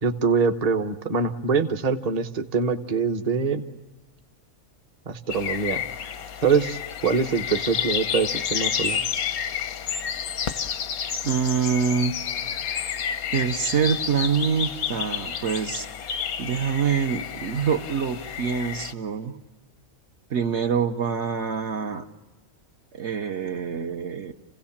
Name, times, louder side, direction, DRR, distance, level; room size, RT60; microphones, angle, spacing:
voice 1, 0.0-3.6 5.1-5.8 6.4-9.0, right 5 dB, 30° right, 8 dB, 0.9 m, -24 dB
sound 1, 5.3-18.9, left 8 dB, 85° left, 1.4 m, -30 dB
voice 2, 11.2-12.2 13.3-15.9 16.4-19.4 20.3-22.0 22.9-24.3, right 6 dB, 60° right, 5 dB, 1.1 m, -25 dB
29.5 x 17.0 x 7.2 m, 1.4 s
omnidirectional pair, 1.5 m